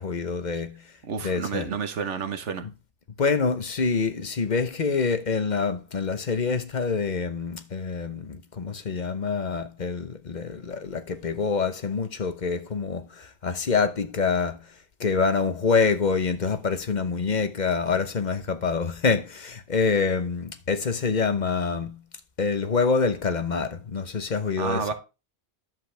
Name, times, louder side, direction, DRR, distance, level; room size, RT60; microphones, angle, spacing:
voice 1, 0.0-0.9 1.2-1.7 2.6-2.7 3.2-14.7 15.0-22.0 22.4-24.9, left 5 dB, 45° left, 0.9 m, -26 dB
voice 2, 1.0-2.6 24.6-24.9, right 6 dB, 90° right, 1.4 m, -30 dB
11.0 x 7.5 x 3.4 m
omnidirectional pair, 1.2 m